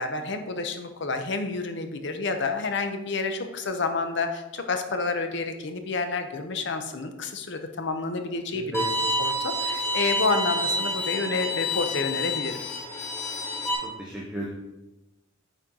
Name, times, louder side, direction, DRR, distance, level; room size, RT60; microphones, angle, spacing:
voice 1, 0.0-8.9 9.2-12.6, left 3 dB, 60° left, 7 dB, 0.8 m, -29 dB
voice 2, 8.5-8.8 14.0-14.5, equal, 5° right, -5 dB, 1.0 m, -33 dB
Bowed string instrument, 8.7-13.7, left 1 dB, 15° left, 1.7 m, -28 dB
9.1 x 4.4 x 3.8 m, 1.0 s
head